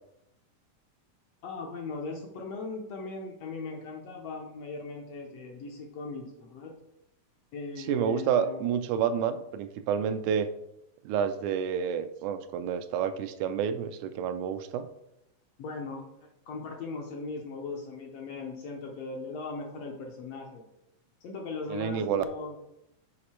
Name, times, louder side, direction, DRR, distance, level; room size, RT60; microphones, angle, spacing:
voice 1, 1.4-6.7 7.5-8.6 15.6-20.6 21.2-22.6, left 3 dB, 70° left, 1 dB, 1.6 m, -39 dB
voice 2, 7.8-10.5 11.1-14.9 21.7-22.2, right 8 dB, 80° right, 10 dB, 1.9 m, -29 dB
6.4 x 5.0 x 4.2 m, 0.83 s
omnidirectional pair, 3.6 m